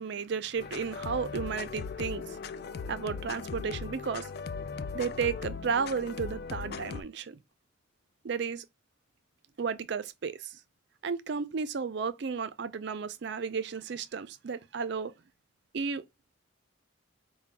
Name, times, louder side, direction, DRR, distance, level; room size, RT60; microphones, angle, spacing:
voice 1, 0.0-2.4 2.9-4.3 4.9-7.4 8.2-8.7 9.6-10.6 11.0-15.1 15.7-16.0, right 5 dB, 55° right, 0.4 m, -33 dB
sound 1, 0.6-7.0, left 5 dB, 50° left, 0.3 m, -38 dB
4.9 x 2.1 x 3.3 m
head